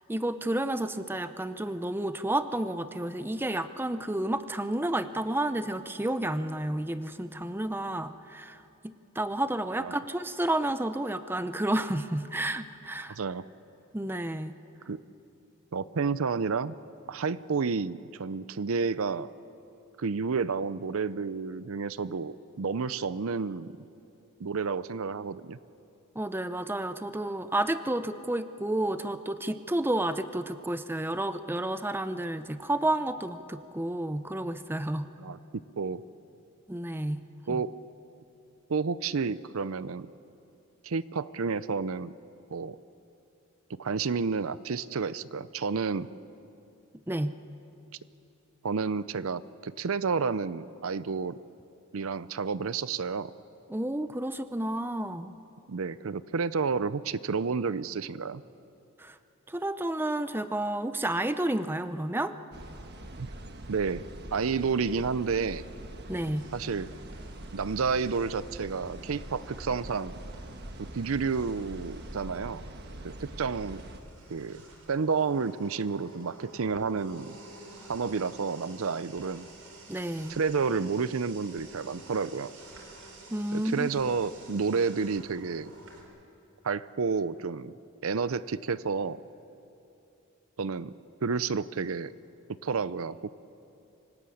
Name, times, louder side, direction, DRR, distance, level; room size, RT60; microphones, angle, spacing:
voice 1, 0.1-8.6 8.8-13.1 13.9-14.5 26.2-35.1 36.7-37.6 47.1-47.4 53.7-55.3 59.0-59.1 59.5-62.4 66.1-66.5 79.9-80.4 83.3-84.0, right 1 dB, 10° right, 11 dB, 0.6 m, -31 dB
voice 2, 13.1-13.5 14.9-15.0 15.7-16.7 17.1-19.3 20.0-23.7 24.4-25.6 35.2-35.4 35.8-36.0 37.5-37.7 38.7-40.1 40.8-42.1 42.5-42.8 43.8-46.1 48.6-51.4 51.9-53.3 55.7-58.4 63.2-63.3 63.7-64.0 64.3-65.6 66.5-66.9 67.5-70.1 70.8-72.6 73.0-73.8 74.3-74.6 74.9-77.4 77.9-79.5 80.3-82.5 83.5-85.7 86.6-87.7 88.0-89.2 90.6-90.9 91.2-92.1 92.6-93.3, right 5 dB, 65° right, 16 dB, 0.5 m, -30 dB
sound 1, 62.5-74.0, right 1 dB, 50° right, 1.4 m, -43 dB
sound 2, 66.3-86.0, right 2 dB, 80° right, 4.6 m, -51 dB
26.5 x 18.0 x 8.5 m, 2.8 s
head